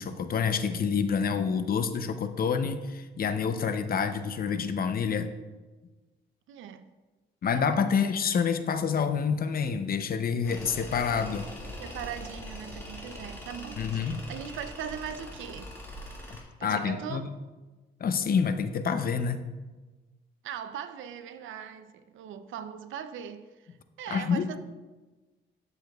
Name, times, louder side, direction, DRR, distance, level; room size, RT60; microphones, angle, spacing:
voice 1, 0.0-5.3 7.4-11.5 13.8-14.3 16.6-17.3 18.0-19.4 24.1-24.6, left 6 dB, 50° left, 0.6 m, -28 dB
voice 2, 6.5-6.9 7.5-7.8 11.8-15.7 16.6-17.3 20.4-24.6, right 8 dB, 80° right, 0.6 m, -40 dB
Tools, 10.4-16.4, left 1 dB, 10° left, 2.0 m, -42 dB
12.0 x 6.8 x 2.3 m
cardioid pair, 90°, 20 cm